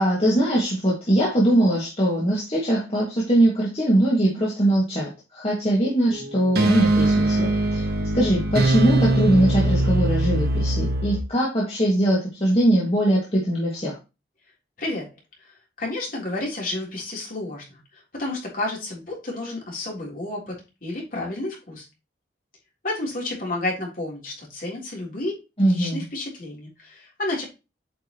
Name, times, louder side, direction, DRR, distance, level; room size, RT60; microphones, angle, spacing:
voice 1, 0.0-7.8 8.1-14.0 25.6-26.0, right 1 dB, 35° left, 2.2 m, -21 dB
sound 1, 6.1-11.2, right 2 dB, 60° right, 1.5 m, -22 dB
voice 2, 15.8-21.9 22.8-25.3 25.6-27.4, left 2 dB, 50° left, 3.7 m, -31 dB
8.8 x 5.6 x 3.1 m
head